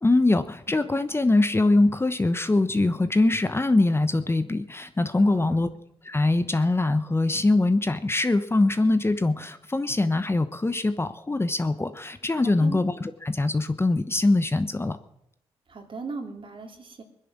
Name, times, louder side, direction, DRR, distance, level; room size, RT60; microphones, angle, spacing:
voice 1, 0.0-5.7 6.0-15.0, left 2 dB, 20° left, 11 dB, 1.0 m, -23 dB
voice 2, 5.2-5.7 12.4-12.8 15.7-17.0, right 3 dB, 50° right, 3 dB, 3.1 m, -38 dB
19.0 x 10.5 x 7.3 m, 0.78 s
supercardioid pair, 55°, 11 cm